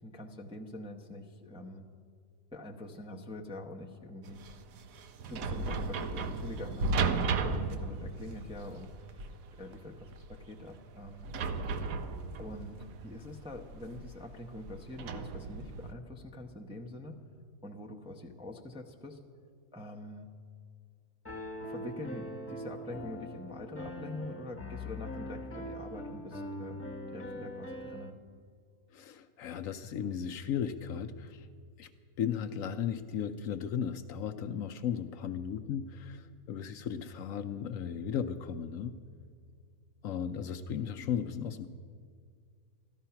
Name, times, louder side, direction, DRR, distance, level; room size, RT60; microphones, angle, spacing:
voice 1, 0.0-1.9 2.5-4.4 5.3-9.2 9.6-11.3 12.4-17.2 17.6-19.2 19.7-20.3 21.6-26.8 27.1-28.2, left 1 dB, 5° right, 1 dB, 0.5 m, -45 dB
sound 1, 4.2-15.9, right 4 dB, 70° right, 1.1 m, -35 dB
Piano, 21.2-28.1, left 1 dB, 10° left, 0.9 m, -42 dB
voice 2, 28.9-31.5 31.8-31.9 32.2-38.9 40.0-41.7, left 8 dB, 70° left, 8 dB, 0.9 m, -35 dB
13.5 x 13.0 x 5.7 m, 2.1 s
omnidirectional pair, 1.6 m